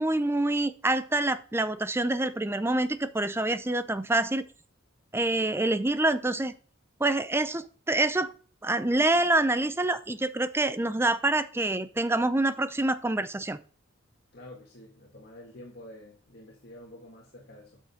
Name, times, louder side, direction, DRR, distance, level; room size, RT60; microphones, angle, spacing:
voice 1, 0.0-4.4 5.1-6.5 7.0-8.3 8.6-13.6, right 2 dB, 10° right, 0.5 m, -26 dB
voice 2, 14.3-17.8, left 1 dB, 50° left, 1.8 m, -48 dB
8.7 x 6.4 x 4.3 m
head